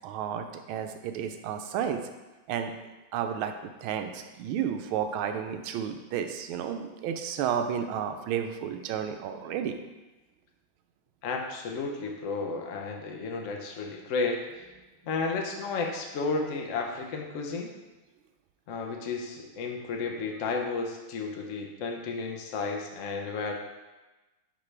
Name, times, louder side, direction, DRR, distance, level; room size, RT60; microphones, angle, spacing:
voice 1, 0.0-2.0 2.5-2.7 3.1-9.8, right 8 dB, 85° right, 7 dB, 1.4 m, -32 dB
voice 2, 11.2-14.7 15.0-17.7 18.7-23.5, left 4 dB, 65° left, 1 dB, 0.8 m, -32 dB
10.0 x 3.7 x 3.3 m, 1.1 s
omnidirectional pair, 2.2 m